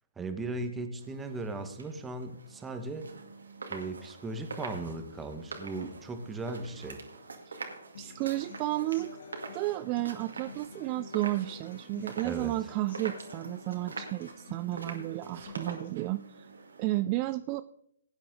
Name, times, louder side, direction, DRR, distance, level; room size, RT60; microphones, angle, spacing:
voice 1, 0.2-3.1 3.7-7.0 12.2-12.7, right 2 dB, 10° right, 7 dB, 1.4 m, -37 dB
sound 1, 1.0-17.0, right 3 dB, 75° right, 2.3 m, -45 dB
Human voice / Acoustic guitar, 7.9-15.9, left 5 dB, 55° left, 1.8 m, -50 dB
voice 2, 8.0-9.1 9.5-16.5 16.8-17.6, right 18 dB, 30° right, 13 dB, 0.4 m, -32 dB
Sneeze, 10.5-10.8 11.3-11.6 14.2-14.3 15.2-16.1, right 6 dB, 55° right, 2.2 m, -54 dB
18.0 x 9.2 x 3.9 m, 0.71 s
figure-of-eight pair, 135°, 0 cm